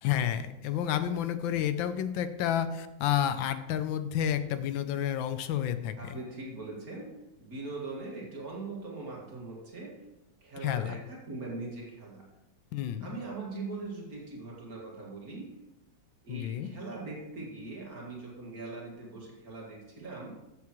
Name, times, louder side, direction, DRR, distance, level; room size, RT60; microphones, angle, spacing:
voice 1, 0.0-6.2 10.6-11.0 12.7-13.1 16.3-16.7, left 10 dB, 85° left, 11 dB, 1.4 m, -30 dB
voice 2, 6.0-10.0 10.4-12.3 13.0-15.6 16.2-20.4, right 3 dB, 50° right, -3 dB, 2.4 m, -41 dB
14.0 x 7.2 x 3.1 m, 0.97 s
omnidirectional pair, 2.1 m